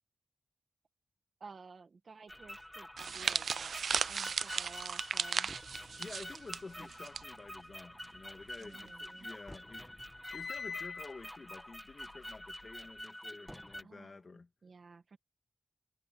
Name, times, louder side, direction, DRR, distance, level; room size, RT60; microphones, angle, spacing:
voice 1, 1.4-3.7 4.1-5.5 8.6-9.3 13.8-14.2 14.6-15.2, right 4 dB, 60° right, 1.7 m, -54 dB
sound 1, 2.3-13.8, equal, 5° left, 2.0 m, -48 dB
sound 2, 3.0-7.2 7.5-7.7 8.6-8.9, right 6 dB, 80° right, 0.4 m, -36 dB
voice 2, 6.0-10.0 10.3-14.5, left 3 dB, 45° left, 2.7 m, -50 dB
sound 3, 8.2-9.3 9.6-13.0, left 5 dB, 85° left, 2.9 m, -46 dB
wide cardioid pair, 80°, 0 cm